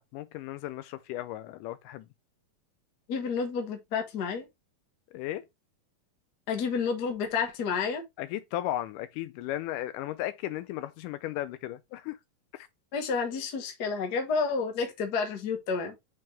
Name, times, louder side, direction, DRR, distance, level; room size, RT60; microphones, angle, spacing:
voice 1, 0.0-2.1 5.1-5.5 8.2-12.2 12.5-12.7, left 14 dB, 80° left, 2.0 m, -35 dB
voice 2, 3.1-4.4 6.5-8.0 12.9-15.9, left 5 dB, 50° left, 1.2 m, -30 dB
6.1 x 4.7 x 3.3 m
omnidirectional pair, 3.9 m